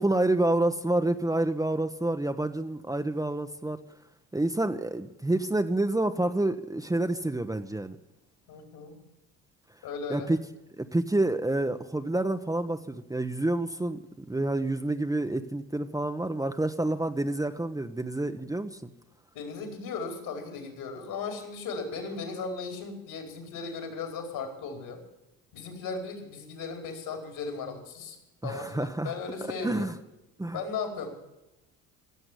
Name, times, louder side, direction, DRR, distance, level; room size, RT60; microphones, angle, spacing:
voice 1, 0.0-3.8 4.3-8.0 10.1-10.4 10.8-18.9 28.4-29.1 29.6-29.9 30.4-30.6, right 2 dB, 10° right, 7 dB, 1.0 m, -28 dB
voice 2, 8.5-8.9 9.8-10.3 19.3-25.0 25.5-28.2 28.4-29.9 30.5-31.1, left 4 dB, 65° left, 5 dB, 4.6 m, -36 dB
16.0 x 7.8 x 10.0 m, 0.96 s
supercardioid pair, 70°, 38 cm